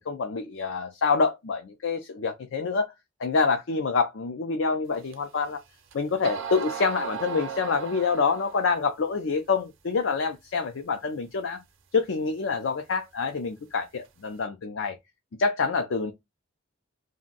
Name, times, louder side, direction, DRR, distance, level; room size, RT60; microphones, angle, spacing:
voice 1, 0.1-2.9 3.2-5.6 5.9-11.6 11.9-15.0 15.4-16.1, left 4 dB, 80° left, 0.5 m, -26 dB
sound 1, 5.1-5.2 5.9-6.0 6.2-8.7, right 6 dB, 90° right, 0.6 m, -36 dB
2.6 x 2.1 x 3.8 m
head